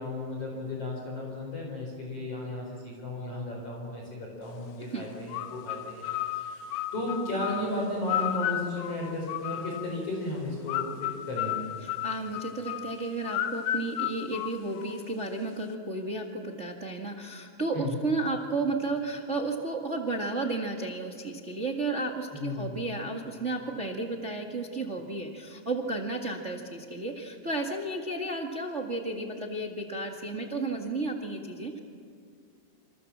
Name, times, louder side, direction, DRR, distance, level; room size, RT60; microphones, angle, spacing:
voice 1, 0.0-6.1 6.3-11.8 17.7-18.0 22.3-22.8, left 1 dB, 35° left, -1 dB, 5.7 m, -34 dB
sound 1, 5.3-10.0 10.7-15.1, left 12 dB, 80° left, 2.8 m, -33 dB
voice 2, 11.8-31.8, right 2 dB, 45° right, 1 dB, 0.9 m, -33 dB
28.5 x 27.0 x 7.4 m, 2.3 s
omnidirectional pair, 4.7 m